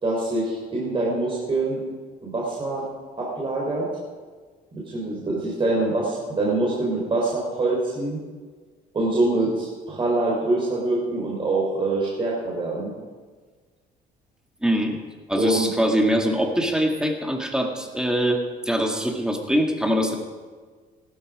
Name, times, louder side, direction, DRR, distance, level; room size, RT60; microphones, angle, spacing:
voice 1, 0.0-1.8 2.2-2.8 3.2-3.9 4.7-8.2 8.9-12.9 15.3-15.7, right 2 dB, 30° right, -4 dB, 3.9 m, -24 dB
voice 2, 14.6-15.0 15.3-20.2, equal, 5° right, 2 dB, 2.2 m, -23 dB
16.5 x 12.5 x 5.1 m, 1.5 s
cardioid pair, 110°, 17 cm